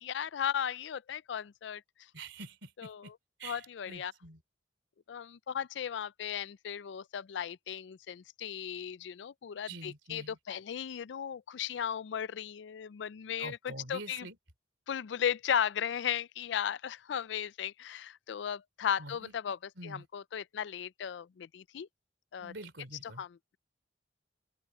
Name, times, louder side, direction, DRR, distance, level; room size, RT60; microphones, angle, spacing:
voice 1, 0.0-1.8 2.8-3.1 3.4-4.1 5.1-14.3 14.9-21.9 22.3-22.5 23.0-23.6, left 8 dB, 70° left, 0.4 m, -36 dB
voice 2, 2.1-3.1 3.4-4.4 9.7-10.4 13.4-14.4 19.0-19.3 19.8-20.1 22.4-23.2, right 2 dB, 75° right, 3.1 m, -46 dB
open air
head